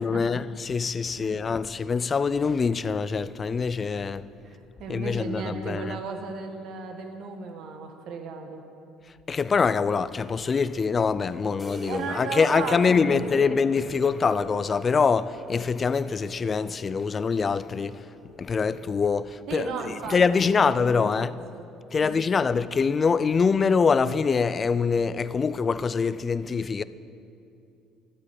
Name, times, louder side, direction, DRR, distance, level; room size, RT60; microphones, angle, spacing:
voice 1, 0.0-4.3 4.9-6.0 9.3-18.1 18.4-21.4 21.9-26.8, left 5 dB, 30° left, 0.4 m, -24 dB
voice 2, 4.4-8.6 11.9-13.6 19.5-21.7 22.0-22.5, right 5 dB, 65° right, 1.5 m, -35 dB
sound 1, 11.6-19.1, equal, 15° left, 3.8 m, -43 dB
12.5 x 8.6 x 8.2 m
cardioid pair, 100°, 0 cm